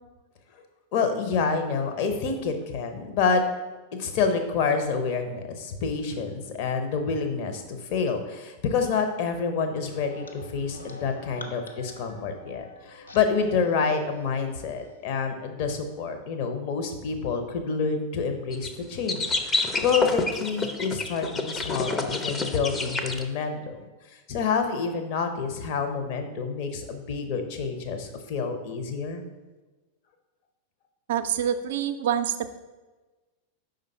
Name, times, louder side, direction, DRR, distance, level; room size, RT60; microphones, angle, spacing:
voice 1, 0.9-3.4 3.9-23.8 24.3-29.2, left 5 dB, 45° left, 6 dB, 0.8 m, -28 dB
sound 1, 9.9-14.7, left 2 dB, 75° left, 0.6 m, -45 dB
sound 2, 18.5-18.7 19.1-23.2, left 3 dB, 15° left, 0.5 m, -28 dB
voice 2, 31.1-32.6, right 9 dB, 55° right, 11 dB, 0.4 m, -26 dB
5.2 x 3.9 x 5.5 m, 1.2 s
figure-of-eight pair, 90°, 0 cm